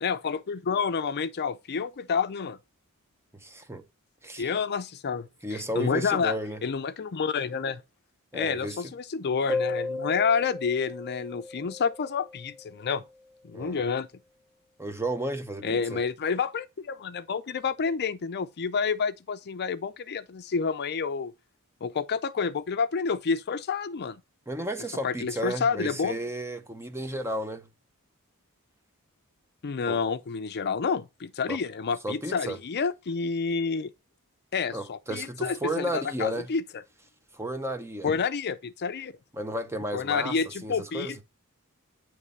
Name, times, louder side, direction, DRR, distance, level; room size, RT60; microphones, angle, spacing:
voice 1, 0.0-2.6 4.4-6.4 6.6-7.8 8.3-13.0 13.4-14.1 15.6-21.3 21.8-24.2 25.0-26.2 29.6-33.9 34.5-36.6 38.0-39.1 39.9-41.2, left 5 dB, 50° left, 0.5 m, -29 dB
voice 2, 3.3-3.8 4.2-4.5 5.4-6.6 8.3-8.9 13.5-13.8 14.8-16.0 24.5-27.7 29.9-30.0 31.5-31.6 32.0-32.6 34.7-36.5 37.3-38.1 39.3-40.4 40.6-41.1, right 1 dB, 10° right, 0.8 m, -33 dB
sound 1, 9.5-12.8, left 3 dB, 15° left, 1.3 m, -34 dB
9.7 x 3.2 x 5.3 m
head